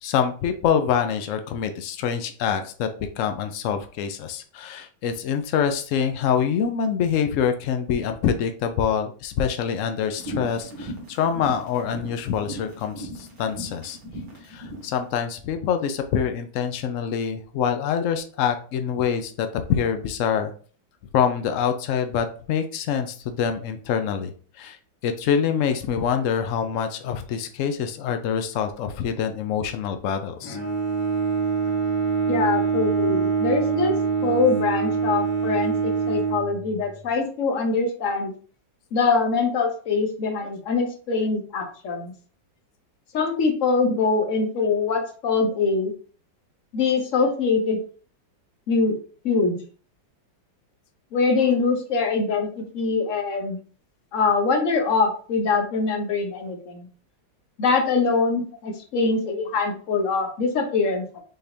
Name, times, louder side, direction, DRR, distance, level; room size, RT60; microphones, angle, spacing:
voice 1, 0.0-2.9 3.2-14.0 14.4-20.5 21.1-24.8 25.0-30.6, left 7 dB, 90° left, 7 dB, 0.6 m, -25 dB
sound 1, 10.1-14.9, equal, 65° right, 2.2 m, -37 dB
Bowed string instrument, 30.4-37.1, right 5 dB, 25° left, 0.9 m, -25 dB
voice 2, 32.3-34.0 34.2-38.3 38.9-42.1 43.1-45.9 46.7-47.8 48.7-49.0 49.2-49.6 51.1-53.6 54.1-56.9 57.6-61.2, left 4 dB, 50° left, 4 dB, 1.1 m, -23 dB
5.7 x 3.4 x 2.6 m, 0.41 s
omnidirectional pair, 2.0 m